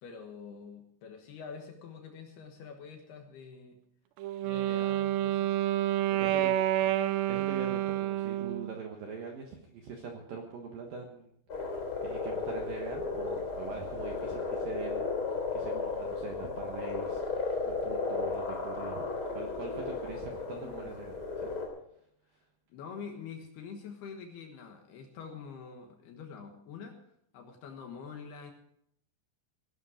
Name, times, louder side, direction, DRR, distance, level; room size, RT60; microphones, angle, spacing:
voice 1, 0.0-3.8 4.4-5.5 6.1-6.4 6.8-6.9 7.7-7.8 17.5-17.6 20.6-20.9 22.7-27.0 27.3-28.5, left 6 dB, 65° left, 4 dB, 2.9 m, -46 dB
Wind instrument woodwind instrument, 4.2-8.7, right 13 dB, 85° right, 2.4 m, -29 dB
voice 2, 6.2-6.5 7.3-11.3 12.0-21.5, right 5 dB, 70° right, 2 dB, 2.2 m, -43 dB
sound 1, 11.5-21.7, left 4 dB, 25° left, 3.0 m, -34 dB
18.0 x 11.5 x 5.0 m, 0.71 s
omnidirectional pair, 5.8 m